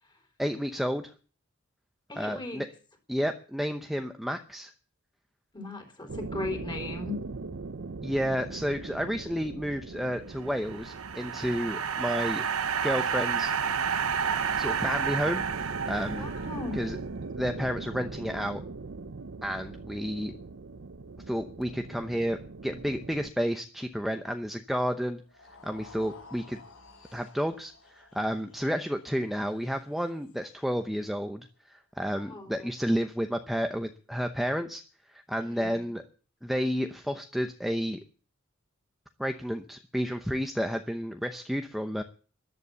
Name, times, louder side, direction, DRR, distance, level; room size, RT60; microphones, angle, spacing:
voice 1, 0.4-1.1 2.2-2.7 3.1-4.7 8.0-12.5 12.8-13.5 14.6-16.2 16.7-17.0 17.4-18.6 19.4-20.3 21.3-25.2 25.6-26.6 27.1-34.8 35.1-36.0 36.4-38.0 39.2-42.0, equal, ahead, 6 dB, 0.8 m, -31 dB
voice 2, 2.1-2.6 5.5-7.2 16.1-16.8 32.1-32.5 35.5-35.9, left 2 dB, 20° left, 5 dB, 4.0 m, -37 dB
sound 1, 6.1-23.3, right 3 dB, 60° right, 0.7 m, -40 dB
sound 2, 10.5-16.8, right 7 dB, 75° right, 1.1 m, -30 dB
sound 3, 25.2-31.5, left 3 dB, 65° left, 5.5 m, -54 dB
14.0 x 11.5 x 7.0 m, 0.39 s
head